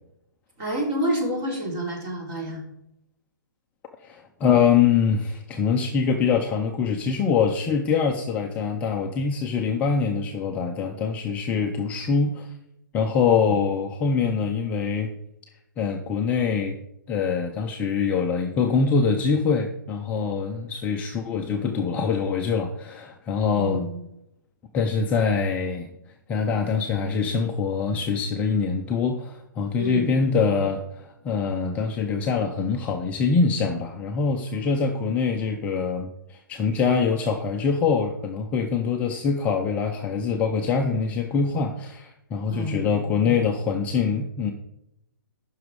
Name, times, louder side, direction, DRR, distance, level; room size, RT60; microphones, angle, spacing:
voice 1, 0.6-2.6 13.5-13.6 23.6-24.0 29.8-30.1 42.5-42.9, right 1 dB, 25° right, -1 dB, 3.5 m, -28 dB
voice 2, 4.0-12.5 12.9-15.1 15.8-16.8 17.1-23.9 24.7-25.9 26.3-44.5, left 5 dB, 15° left, 2 dB, 0.5 m, -24 dB
14.5 x 6.2 x 4.7 m, 0.84 s
hypercardioid pair, 165°, 11 cm